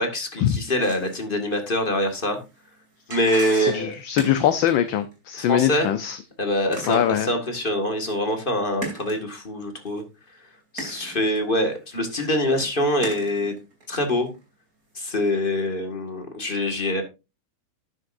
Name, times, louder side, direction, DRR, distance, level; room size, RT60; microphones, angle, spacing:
voice 1, 0.0-2.4 3.1-3.9 5.4-5.9 6.4-10.0 10.7-13.5 13.9-14.3 15.0-17.0, left 1 dB, 25° left, 5 dB, 1.9 m, -24 dB
sound 1, 0.8-5.1 5.6-5.9 6.7-7.5 8.1-8.2 8.8-9.2 9.9-10.0 10.8-12.2 12.6-14.5 15.1-15.2, right 2 dB, 40° right, 3.4 m, -38 dB
voice 2, 3.5-6.2 6.9-7.3, left 10 dB, 70° left, 10 dB, 1.4 m, -22 dB
11.5 x 9.7 x 2.6 m, 0.27 s
omnidirectional pair, 2.3 m